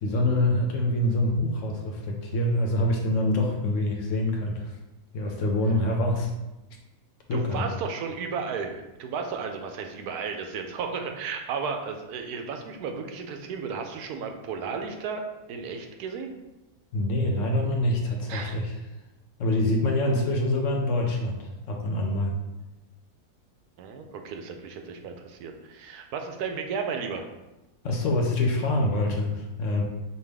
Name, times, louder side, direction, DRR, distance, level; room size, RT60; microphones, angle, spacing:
voice 1, 0.0-4.7 5.1-6.3 7.3-7.7 16.9-18.7 19.4-22.3 27.8-29.8, left 1 dB, 65° left, 1 dB, 0.9 m, -25 dB
voice 2, 7.3-15.2 15.5-16.4 18.3-18.6 23.8-27.3, right 5 dB, 90° right, 4 dB, 1.1 m, -34 dB
5.6 x 2.3 x 3.3 m, 1.0 s
omnidirectional pair, 1.6 m